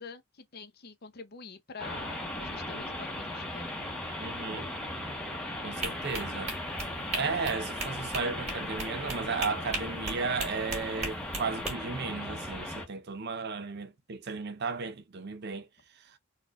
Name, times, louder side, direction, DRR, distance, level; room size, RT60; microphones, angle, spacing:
voice 1, 0.0-3.8, left 4 dB, 45° left, 0.7 m, -46 dB
sound 1, 1.8-12.9, left 1 dB, 5° left, 1.0 m, -37 dB
voice 2, 4.2-4.7 5.6-6.6 7.1-15.7 16.0-16.2, right 4 dB, 50° right, 0.5 m, -34 dB
sound 2, 5.8-11.7, right 3 dB, 30° right, 1.9 m, -37 dB
4.1 x 2.5 x 2.4 m
head